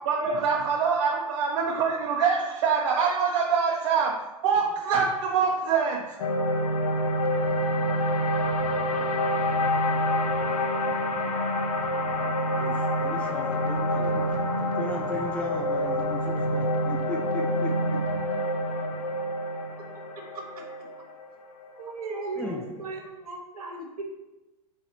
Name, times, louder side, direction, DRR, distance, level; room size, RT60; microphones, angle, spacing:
voice 1, 0.1-4.1 4.4-6.0, right 5 dB, 50° right, -1 dB, 0.5 m, -24 dB
sound 1, 6.2-22.5, left 1 dB, 70° left, 0.6 m, -27 dB
voice 2, 12.6-17.7 22.4-22.6, left 2 dB, 5° left, -1 dB, 0.4 m, -37 dB
voice 3, 21.7-24.0, right 3 dB, 70° right, 0 dB, 1.0 m, -36 dB
3.2 x 2.8 x 3.8 m, 1.0 s
figure-of-eight pair, 105°, 20 cm